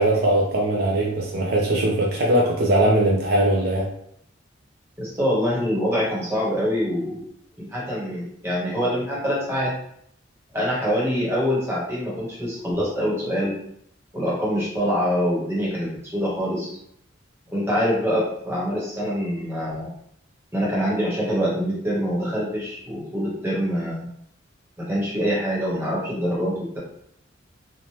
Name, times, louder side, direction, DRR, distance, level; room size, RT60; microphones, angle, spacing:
voice 1, 0.0-3.9, right 1 dB, 50° right, -2 dB, 0.4 m, -20 dB
voice 2, 5.0-7.2 7.6-9.7 10.5-13.5 14.1-16.8 17.5-19.9 20.5-24.1 24.8-26.8, equal, 15° right, -6 dB, 0.8 m, -25 dB
3.1 x 2.0 x 2.8 m, 0.71 s
head